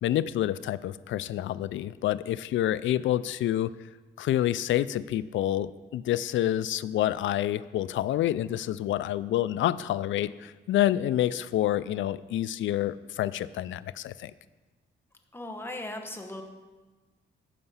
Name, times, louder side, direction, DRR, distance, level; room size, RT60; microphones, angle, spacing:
voice 1, 0.0-3.7 4.2-14.3, left 12 dB, 85° left, 16 dB, 0.4 m, -28 dB
voice 2, 15.3-16.4, left 1 dB, 10° left, 3 dB, 1.2 m, -37 dB
15.5 x 5.8 x 5.6 m, 1.3 s
cardioid pair, 140°, 19 cm